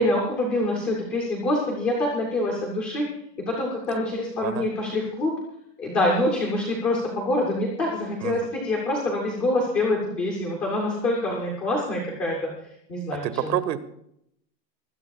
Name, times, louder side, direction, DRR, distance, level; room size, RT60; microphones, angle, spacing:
voice 1, 0.0-3.1 3.5-5.3 5.8-12.5 12.9-13.5, left 1 dB, 5° left, -1 dB, 0.5 m, -25 dB
voice 2, 13.2-13.8, right 11 dB, 85° right, 13 dB, 1.6 m, -28 dB
23.0 x 16.5 x 2.3 m, 0.74 s
supercardioid pair, 175°, 49 cm